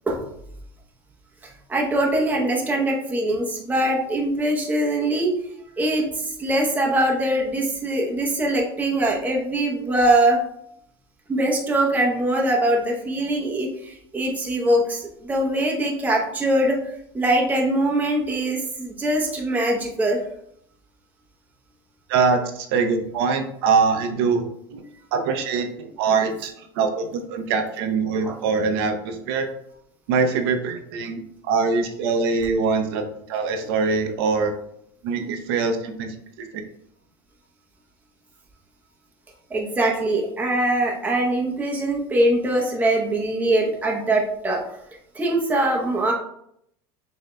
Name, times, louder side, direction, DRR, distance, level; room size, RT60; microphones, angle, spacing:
voice 1, 1.7-5.3 5.8-10.4 11.3-16.8 17.1-20.2 28.2-28.3 39.5-44.6 45.1-46.1, right 1 dB, 15° right, -1 dB, 0.8 m, -22 dB
voice 2, 22.1-24.4 24.7-24.8 25.1-29.5 30.1-34.5 35.0-36.6, right 5 dB, 75° right, 6 dB, 0.7 m, -23 dB
6.8 x 2.7 x 2.2 m, 0.73 s
supercardioid pair, 130°, 13 cm